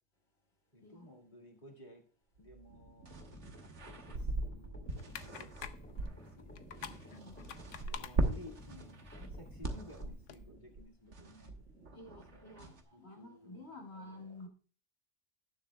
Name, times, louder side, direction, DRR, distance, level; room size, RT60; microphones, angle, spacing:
voice 1, 0.7-2.0 2.4-5.5 5.9-7.0 7.9-12.6 12.9-13.7 13.9-14.4, left 1 dB, 40° left, 2.2 m, -56 dB
sound 1, 2.4-12.8, right 2 dB, 65° right, 1.6 m, -41 dB
sound 2, 3.1-10.1, left 1 dB, 10° left, 2.1 m, -53 dB
sound 3, 4.9-10.4, left 8 dB, 80° left, 1.1 m, -51 dB
voice 2, 7.1-7.5 11.9-14.5, left 2 dB, 55° left, 2.4 m, -51 dB
18.0 x 7.2 x 2.3 m
omnidirectional pair, 1.3 m